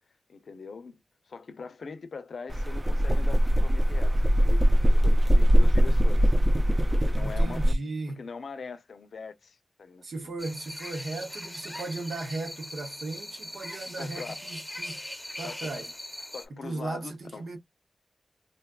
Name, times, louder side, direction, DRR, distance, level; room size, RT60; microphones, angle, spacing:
voice 1, 0.3-6.3 6.9-7.8 8.2-10.3 14.0-14.3 15.4-15.9 16.3-17.5, left 4 dB, 80° left, 0.5 m, -42 dB
sound 1, 2.5-7.7, equal, 25° right, 0.4 m, -21 dB
voice 2, 7.2-8.2 10.0-15.1 15.4-15.9 16.5-17.6, right 3 dB, 85° right, 0.8 m, -36 dB
sound 2, 10.4-16.5, left 1 dB, 10° left, 0.8 m, -40 dB
4.0 x 2.2 x 2.3 m
wide cardioid pair, 75°, 0 cm